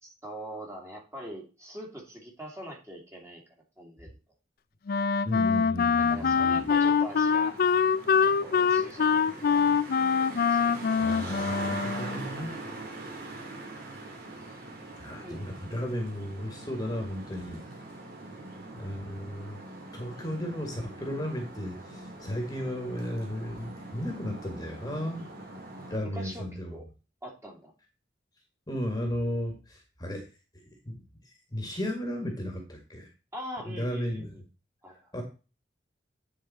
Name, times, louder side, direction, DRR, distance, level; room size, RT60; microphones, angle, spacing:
voice 1, 0.0-3.4 3.8-4.1 5.1-5.3 6.1-7.6 8.2-10.1 10.5-10.6 15.1-15.4 25.7-26.5 26.7-26.9 27.2-27.7 33.3-34.4 34.8-35.1, right 1 dB, 15° right, -1 dB, 2.5 m, -43 dB
Wind instrument woodwind instrument, 4.9-12.3, left 6 dB, 55° left, 0.4 m, -24 dB
voice 2, 5.2-6.7 11.0-12.6 15.0-17.6 18.7-19.6 19.9-25.2 25.9-26.7 28.7-30.3 30.9-31.0 31.5-33.1 33.7-34.3 35.1-35.2, equal, 20° left, 2 dB, 1.9 m, -34 dB
Traffic noise roadway noise, 6.0-26.0, right 2 dB, 55° right, 2.7 m, -43 dB
9.9 x 4.8 x 4.2 m, 0.32 s
head